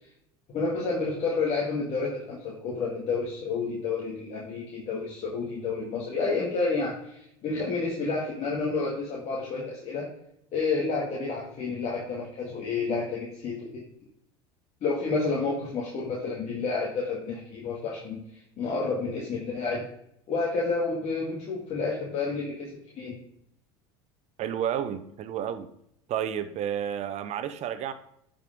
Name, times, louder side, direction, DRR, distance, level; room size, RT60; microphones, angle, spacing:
voice 1, 0.5-10.1 10.5-13.8 14.8-18.2 18.6-19.8 20.3-22.7 23.0-23.2, left 4 dB, 45° left, -4 dB, 2.2 m, -30 dB
voice 2, 24.4-25.7 26.1-27.9, right 9 dB, 50° right, 12 dB, 0.8 m, -31 dB
11.5 x 5.2 x 3.7 m, 0.74 s
hypercardioid pair, 80°, 15 cm